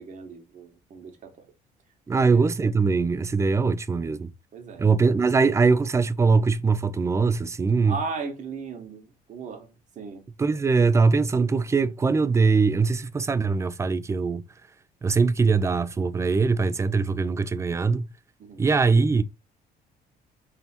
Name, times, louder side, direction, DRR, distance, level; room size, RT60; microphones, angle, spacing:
voice 1, 0.0-1.5 2.1-2.4 4.5-4.9 7.9-9.7 9.9-10.2 18.4-18.7, right 4 dB, 45° right, 1.3 m, -36 dB
voice 2, 2.1-4.3 4.8-8.0 10.4-14.4 15.0-18.1 18.6-19.2, right 4 dB, 15° right, 0.3 m, -22 dB
3.4 x 2.8 x 4.3 m
cardioid pair, 110°, 17 cm